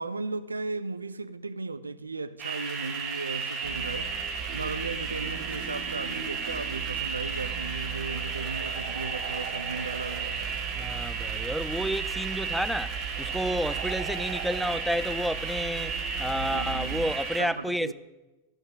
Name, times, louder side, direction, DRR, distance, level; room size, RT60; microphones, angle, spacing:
voice 1, 0.0-10.5 16.3-17.1 17.4-17.9, right 3 dB, 80° right, 0.4 m, -36 dB
sound 1, 2.4-17.4, right 5 dB, 35° right, 2.0 m, -34 dB
sound 2, 3.6-17.1, right 7 dB, 55° right, 0.9 m, -39 dB
voice 2, 10.7-17.9, equal, ahead, 0.3 m, -30 dB
11.5 x 5.3 x 8.2 m
figure-of-eight pair, 90°, 0 cm